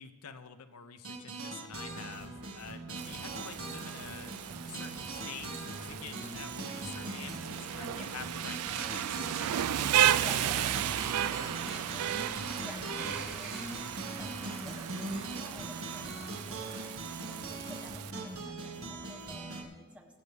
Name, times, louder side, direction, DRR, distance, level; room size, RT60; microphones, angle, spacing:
voice 1, 0.0-9.0 9.3-11.1 11.4-12.5, left 6 dB, 85° left, 9 dB, 0.8 m, -48 dB
sound 1, 1.0-19.6, right 2 dB, 70° right, 1.9 m, -41 dB
Rain, 3.0-18.1, right 11 dB, 90° right, 0.4 m, -34 dB
sound 2, 7.5-15.4, right 4 dB, 50° right, 2.7 m, -48 dB
voice 2, 7.8-8.1 10.2-20.2, equal, 5° right, 3 dB, 1.1 m, -51 dB
24.5 x 8.1 x 3.5 m, 1.5 s
head